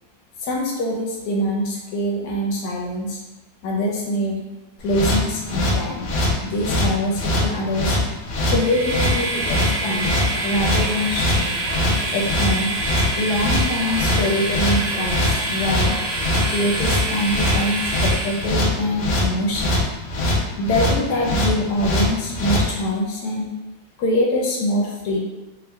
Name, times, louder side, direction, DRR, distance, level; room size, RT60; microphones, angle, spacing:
voice 1, 0.4-3.2 3.6-4.4 4.8-6.1 6.4-8.0 8.5-10.1 10.4-11.6 12.1-12.7 13.2-16.0 16.5-19.8 20.6-23.4 24.0-25.2, left 1 dB, 70° left, -2 dB, 1.0 m, -24 dB
sound 1, 4.8-22.7, left 1 dB, 85° left, 0.6 m, -22 dB
Train, 8.3-18.8, right 2 dB, 60° right, 1.1 m, -27 dB
3.6 x 2.1 x 3.3 m, 1.1 s
omnidirectional pair, 2.1 m